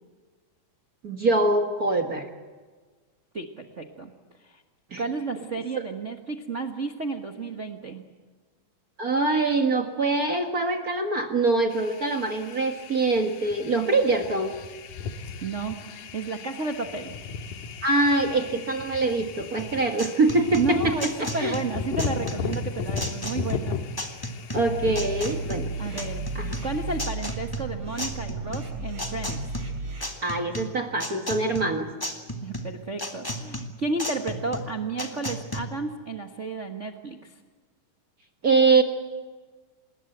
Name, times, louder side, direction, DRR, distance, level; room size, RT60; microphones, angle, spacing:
voice 1, 1.0-2.3 4.9-5.0 9.0-14.5 17.8-21.6 24.5-25.7 26.3-26.6 30.2-31.9 38.4-38.8, right 3 dB, 40° right, 5 dB, 1.3 m, -24 dB
voice 2, 3.3-4.1 4.4-4.6 5.0-8.0 15.2-17.2 20.5-23.8 25.8-26.3 26.6-29.4 32.4-37.3, right 3 dB, 80° right, 3 dB, 0.6 m, -32 dB
sound 1, 11.7-27.0, left 5 dB, 80° left, 3.1 m, -36 dB
sound 2, 19.6-35.6, equal, 10° left, 1.2 m, -35 dB
sound 3, 24.7-30.0, right 2 dB, 60° right, 5.5 m, -34 dB
26.0 x 20.5 x 7.9 m, 1.4 s
omnidirectional pair, 3.7 m